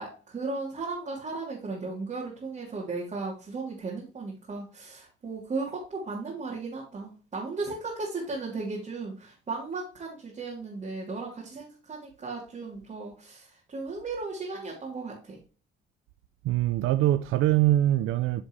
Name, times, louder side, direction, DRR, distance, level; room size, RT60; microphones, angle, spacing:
voice 1, 0.0-15.4, right 3 dB, 35° right, 3.0 m, -36 dB
voice 2, 16.4-18.4, right 14 dB, 80° right, 0.5 m, -23 dB
9.9 x 5.2 x 3.2 m
cardioid pair, 100°, 21 cm